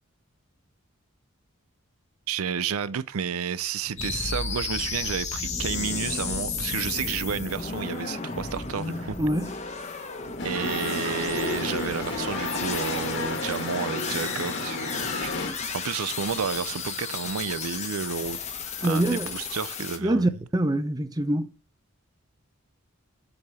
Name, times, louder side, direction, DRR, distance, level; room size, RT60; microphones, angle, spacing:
voice 1, 2.3-9.2 10.4-18.4 18.8-20.3, right 7 dB, 80° right, 0.5 m, -31 dB
sound 1, 4.0-20.0, left 4 dB, 30° left, 1.1 m, -33 dB
voice 2, 9.2-9.5 18.8-19.3 20.0-21.5, right 1 dB, 15° right, 0.6 m, -24 dB
sound 2, 10.4-15.5, left 2 dB, 55° left, 1.7 m, -32 dB
7.8 x 4.7 x 6.8 m
head